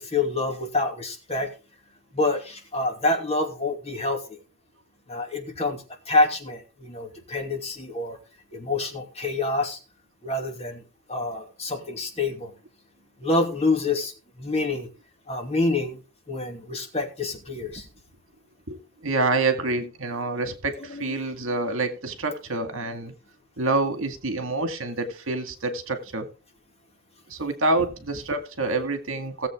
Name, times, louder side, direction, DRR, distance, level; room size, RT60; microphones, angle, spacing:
voice 1, 0.0-1.5 2.1-4.4 5.1-8.2 8.5-9.8 10.2-10.8 11.1-12.5 13.2-14.9 15.3-16.0 16.3-17.9 20.9-21.2, left 2 dB, 30° left, 2.7 m, -27 dB
voice 2, 18.7-23.1 23.6-26.3 27.3-29.5, right 2 dB, 60° right, 2.1 m, -27 dB
18.0 x 7.7 x 3.7 m
head